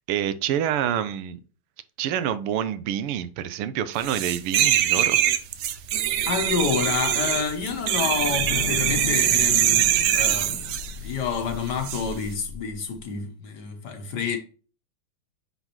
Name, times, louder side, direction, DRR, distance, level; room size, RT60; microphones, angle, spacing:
voice 1, 0.1-1.4 2.0-5.2 9.9-10.1, right 10 dB, 90° right, 1.6 m, -27 dB
sound 1, 4.0-10.9 11.8-12.0, right 11 dB, 75° right, 1.0 m, -23 dB
sound 2, 4.8-13.1, left 9 dB, 75° left, 1.3 m, -37 dB
voice 2, 6.3-10.7 11.0-14.4, left 6 dB, 60° left, 1.4 m, -28 dB
9.1 x 4.1 x 3.0 m
omnidirectional pair, 2.4 m